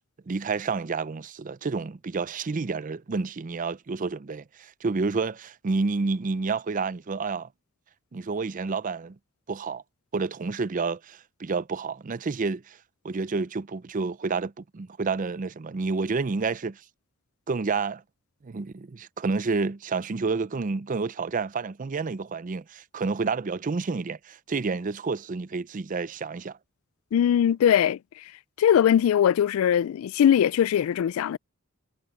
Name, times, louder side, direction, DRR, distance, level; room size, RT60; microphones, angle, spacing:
voice 1, 0.3-7.5 8.1-9.2 9.5-9.8 10.1-12.8 13.0-16.8 17.5-18.0 18.4-26.6, right 4 dB, 40° right, 0.5 m, -29 dB
voice 2, 27.1-28.3 28.6-31.4, left 9 dB, 85° left, 0.3 m, -21 dB
head